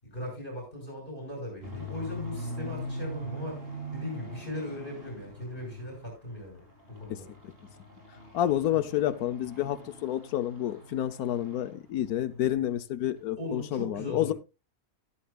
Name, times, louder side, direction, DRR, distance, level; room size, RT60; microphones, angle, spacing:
voice 1, 0.0-3.6 3.9-6.6 6.9-7.3 13.4-14.3, left 1 dB, 35° left, 6.1 m, -38 dB
sound 1, 1.6-6.2 6.5-11.8 12.0-12.3 12.7-12.8 13.2-13.3, equal, 40° right, 4.8 m, -42 dB
voice 2, 8.3-14.3, left 12 dB, 85° left, 1.3 m, -29 dB
14.5 x 13.0 x 2.4 m
omnidirectional pair, 1.5 m